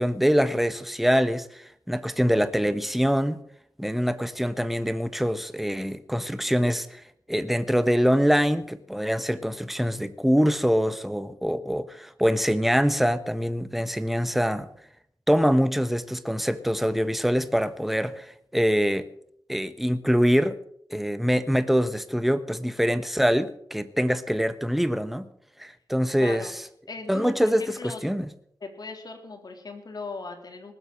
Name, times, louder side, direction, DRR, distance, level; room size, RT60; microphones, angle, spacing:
voice 1, 0.0-3.4 3.8-7.0 7.3-14.7 15.3-19.1 19.5-20.6 20.9-25.3 25.6-26.5 27.1-27.6 28.0-28.3, equal, ahead, 1.3 m, -24 dB
voice 2, 26.2-26.5 26.9-28.0 28.6-30.7, left 3 dB, 60° left, 3.6 m, -38 dB
19.5 x 8.1 x 7.7 m
cardioid pair, 60°, 8 cm